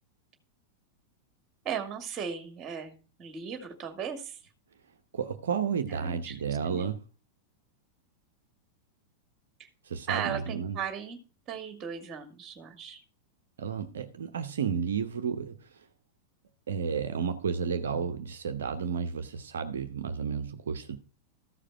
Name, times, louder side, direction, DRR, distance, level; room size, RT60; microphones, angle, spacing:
voice 1, 1.6-4.4 5.9-6.9 9.6-9.7 10.1-11.2 11.5-13.0, right 7 dB, 30° right, 2.3 m, -37 dB
voice 2, 5.1-7.0 9.8-10.8 13.6-15.9 16.7-21.0, right 6 dB, 65° right, 0.8 m, -32 dB
14.0 x 5.0 x 5.7 m
figure-of-eight pair, 90°, 0 cm